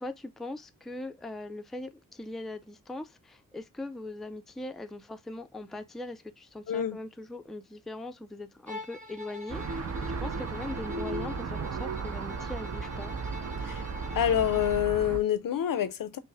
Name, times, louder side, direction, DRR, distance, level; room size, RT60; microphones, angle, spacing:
voice 1, 0.0-13.1, left 2 dB, ahead, 0.3 m, -40 dB
voice 2, 6.7-7.0 13.6-13.8 14.1-16.2, left 10 dB, 75° left, 0.5 m, -27 dB
Bowed string instrument, 8.7-14.9, left 2 dB, 20° right, 1.2 m, -45 dB
sound 1, 9.5-15.2, right 4 dB, 50° right, 0.6 m, -35 dB
5.4 x 2.0 x 3.3 m
wide cardioid pair, 100°, 34 cm